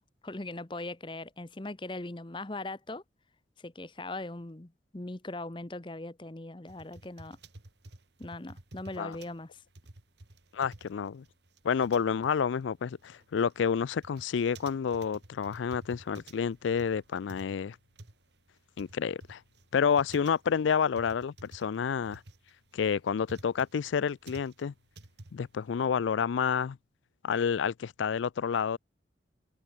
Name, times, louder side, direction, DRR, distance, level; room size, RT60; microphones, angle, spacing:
voice 1, 0.0-3.0 3.6-7.4 8.2-9.6, left 2 dB, 25° left, 0.9 m, -40 dB
sound 1, 6.7-25.9, right 2 dB, 70° right, 2.0 m, -52 dB
voice 2, 10.5-11.2 11.6-17.8 18.8-19.4 19.7-22.2 22.7-24.7 25.3-26.8 27.2-28.8, left 7 dB, 90° left, 0.4 m, -29 dB
head